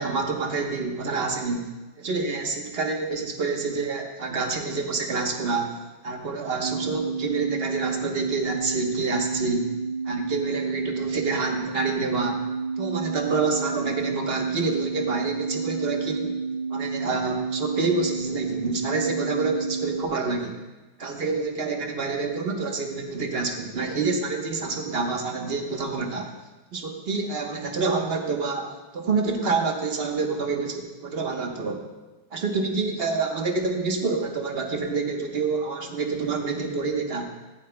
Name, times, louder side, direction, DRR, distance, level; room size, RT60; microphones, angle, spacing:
voice 1, 0.0-1.7 2.0-5.7 6.0-9.7 10.1-12.4 12.8-16.4 16.7-20.6 21.0-26.3 26.7-31.8 32.3-37.3, right 4 dB, 40° right, 3 dB, 1.0 m, -27 dB
sound 1, 6.6-20.1, right 4 dB, 90° right, 1.5 m, -30 dB
17.0 x 11.0 x 2.2 m, 1.1 s
omnidirectional pair, 2.1 m